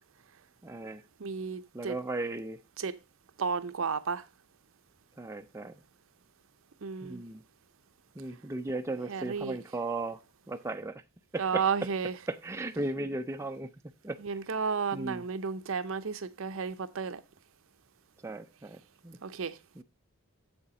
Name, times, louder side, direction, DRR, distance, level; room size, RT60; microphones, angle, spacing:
voice 1, 0.6-1.0 1.7-2.6 5.2-5.8 7.0-7.4 8.2-10.2 10.5-11.0 11.3-11.6 12.3-13.7 14.0-14.2 14.9-15.2 18.2-19.2 19.8-19.9, right 2 dB, 15° right, 0.3 m, -36 dB
voice 2, 1.2-1.9 2.8-3.0 3.4-4.2 6.8-7.2 9.1-9.6 11.4-12.2 14.2-17.2 19.2-19.6, right 5 dB, 60° right, 0.6 m, -32 dB
7.7 x 7.1 x 3.7 m
head